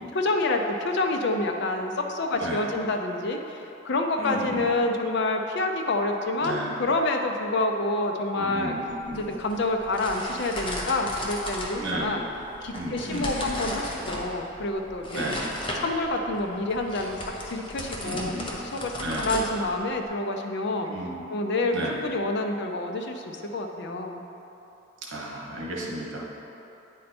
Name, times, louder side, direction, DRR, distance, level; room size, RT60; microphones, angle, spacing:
voice 1, 0.1-8.7 9.1-12.2 12.6-15.4 15.8-17.2 17.5-20.9 21.3-24.2, left 2 dB, 60° left, 4 dB, 0.5 m, -28 dB
voice 2, 2.3-2.6 4.2-4.6 6.4-6.7 8.3-9.2 11.8-12.1 12.7-13.3 15.1-15.4 18.0-18.5 19.0-19.3 20.9-21.2 21.7-22.0 25.0-26.2, right 1 dB, 65° right, -3 dB, 1.2 m, -33 dB
sound 1, 8.9-20.1, left 1 dB, 25° left, 0.8 m, -36 dB
9.0 x 4.3 x 4.3 m, 3.0 s
head